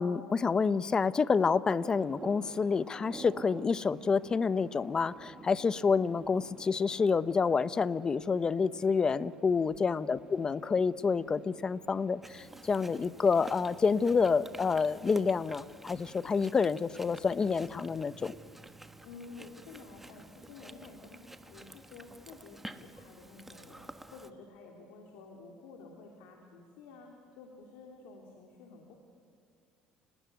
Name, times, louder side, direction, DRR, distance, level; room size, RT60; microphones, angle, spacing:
voice 1, 0.0-18.3, left 5 dB, 30° left, 16 dB, 0.8 m, -28 dB
sound 1, 1.8-13.7, right 4 dB, 25° right, 2.1 m, -52 dB
Chewing mastication, 12.2-24.3, right 1 dB, 10° right, 1.3 m, -50 dB
voice 2, 19.0-29.0, left 4 dB, 85° left, 1 dB, 3.0 m, -51 dB
30.0 x 19.0 x 9.3 m, 2.3 s
cardioid pair, 105°, 3 cm